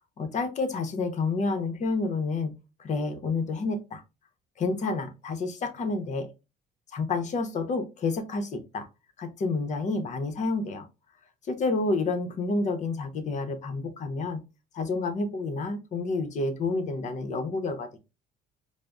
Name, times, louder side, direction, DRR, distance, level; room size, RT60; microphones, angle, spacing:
voice 1, 0.2-2.5 2.8-4.0 4.6-6.3 6.9-8.9 9.2-10.8 11.5-14.4 14.7-17.9, left 3 dB, 45° left, 7 dB, 0.7 m, -29 dB
5.0 x 2.0 x 2.2 m, 0.27 s
cardioid pair, 110°, 17 cm